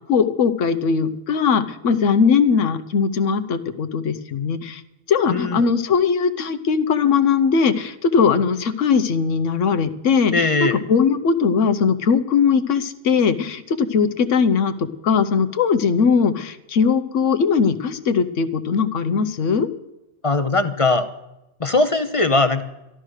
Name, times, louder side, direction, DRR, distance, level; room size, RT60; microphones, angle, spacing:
voice 1, 0.1-4.8 5.1-19.7, left 6 dB, 90° left, 10 dB, 1.2 m, -19 dB
voice 2, 10.3-10.8 20.2-21.1 21.6-22.6, left 3 dB, 35° left, 10 dB, 0.6 m, -19 dB
12.5 x 12.5 x 6.4 m, 0.93 s
omnidirectional pair, 1.3 m